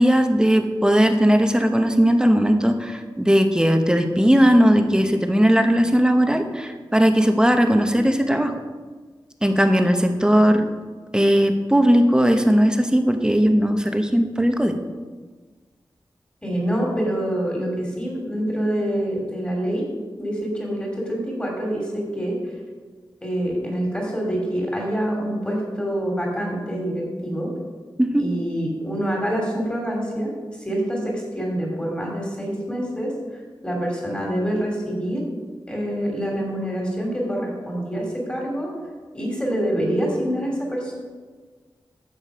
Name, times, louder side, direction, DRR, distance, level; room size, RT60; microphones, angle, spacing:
voice 1, 0.0-8.5 9.4-10.7 11.1-14.7 28.0-28.3, equal, 10° right, 5 dB, 0.9 m, -18 dB
voice 2, 16.4-19.9 20.2-22.4 23.2-27.5 28.2-30.3 30.6-33.1 33.6-35.2 35.7-38.7 39.1-40.9, equal, 15° left, -1 dB, 3.1 m, -26 dB
11.0 x 7.3 x 5.0 m, 1.4 s
wide cardioid pair, 85°, 9 cm